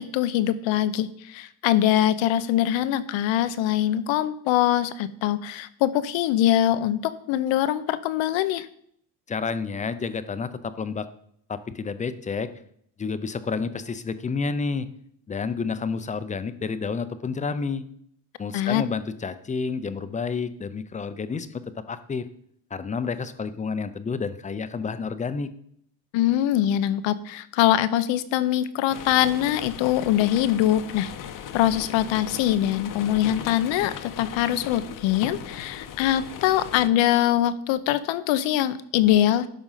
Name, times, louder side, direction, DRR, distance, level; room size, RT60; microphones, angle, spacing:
voice 1, 0.0-8.7 18.5-18.8 26.1-31.1 31.5-39.5, left 12 dB, 90° left, 14 dB, 0.8 m, -23 dB
voice 2, 9.3-11.1 11.5-12.5 13.0-14.9 15.3-17.9 18.4-22.3 22.7-25.5, left 5 dB, 20° left, 12 dB, 0.5 m, -30 dB
sound 1, 28.9-36.9, left 9 dB, 45° left, 0.8 m, -38 dB
12.0 x 5.1 x 5.6 m, 0.68 s
cardioid pair, 145°, 44 cm